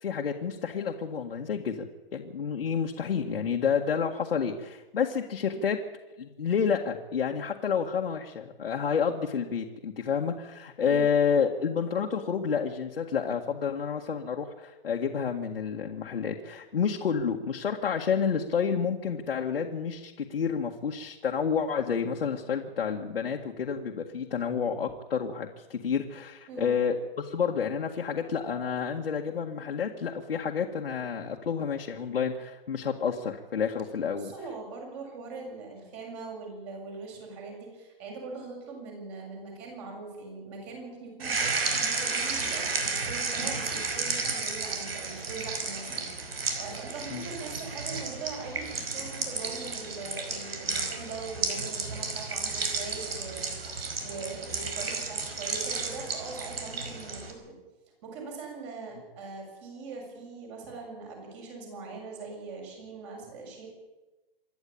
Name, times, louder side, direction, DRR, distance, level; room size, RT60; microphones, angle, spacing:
voice 1, 0.0-1.9 2.1-5.8 6.2-34.3 47.1-47.3, left 6 dB, 80° left, 0 dB, 2.0 m, -29 dB
voice 2, 10.8-11.1 26.5-26.7 34.1-57.6 58.0-63.7, right 4 dB, 30° right, 0 dB, 7.0 m, -41 dB
sound 1, 41.2-57.3, right 4 dB, 85° right, 5.3 m, -32 dB
27.0 x 11.5 x 8.7 m, 1.1 s
hypercardioid pair, 165°, 29 cm